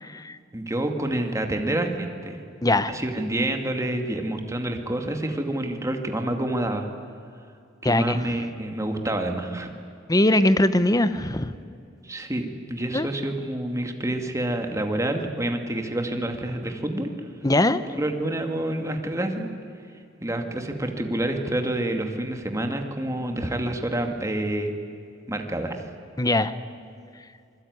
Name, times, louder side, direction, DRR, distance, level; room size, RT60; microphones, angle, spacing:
voice 1, 0.0-0.4 2.6-3.0 7.8-8.2 10.1-11.5 12.9-13.1 17.4-17.8 26.2-26.5, left 1 dB, 20° left, 13 dB, 1.0 m, -21 dB
voice 2, 0.5-2.4 2.9-6.9 7.8-9.7 12.0-17.1 18.0-19.5 20.2-24.7 25.3-25.8, right 1 dB, 15° right, 4 dB, 2.3 m, -28 dB
26.5 x 21.5 x 9.6 m, 2.5 s
head